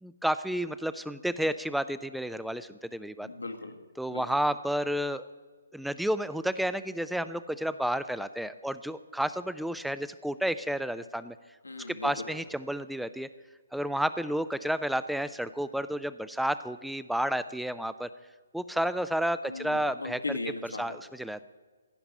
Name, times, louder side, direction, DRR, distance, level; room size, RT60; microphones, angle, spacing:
voice 1, 0.0-3.3 4.0-5.3 5.7-11.4 11.9-13.3 13.7-18.1 18.5-20.2 20.8-21.4, equal, ahead, 13 dB, 0.4 m, -31 dB
voice 2, 3.2-3.8 4.1-4.2 11.6-12.4 19.5-21.0, left 3 dB, 80° left, 4 dB, 1.7 m, -38 dB
16.0 x 5.9 x 9.9 m, 1.4 s
figure-of-eight pair, 135°, 0 cm